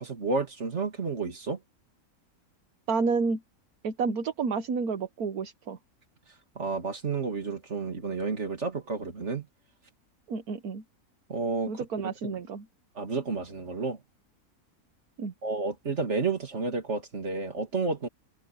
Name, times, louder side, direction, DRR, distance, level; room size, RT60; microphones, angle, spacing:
voice 1, 0.0-1.6 6.5-9.5 11.3-12.4 12.9-14.0 15.4-18.1, right 4 dB, 50° right, 2.9 m, -31 dB
voice 2, 2.9-3.4 3.8-5.8 10.3-10.8 11.7-12.6 15.2-15.3, right 4 dB, 75° right, 1.6 m, -30 dB
omnidirectional pair, 1.6 m